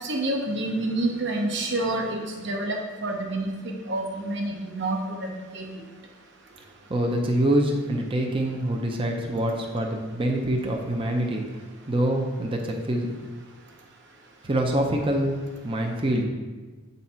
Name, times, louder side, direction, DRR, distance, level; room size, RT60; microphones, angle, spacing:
voice 1, 0.0-5.3 5.5-5.7, right 2 dB, 60° right, 1 dB, 1.1 m, -28 dB
voice 2, 6.6-13.2 14.4-16.2, right 1 dB, 25° right, 1 dB, 0.6 m, -26 dB
8.4 x 4.1 x 4.3 m, 1.3 s
head